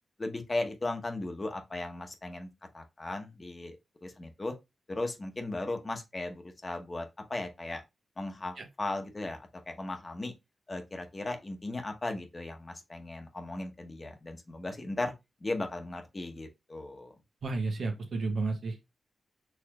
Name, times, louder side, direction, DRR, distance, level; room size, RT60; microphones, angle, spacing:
voice 1, 0.2-2.5 2.7-3.8 4.0-4.5 4.9-7.8 8.2-9.4 9.7-10.3 10.7-15.1 15.4-17.1, left 2 dB, 35° left, 1.0 m, -36 dB
voice 2, 17.4-18.8, right 3 dB, 70° right, 1.0 m, -32 dB
4.6 x 3.2 x 2.3 m
cardioid pair, 55°, 0 cm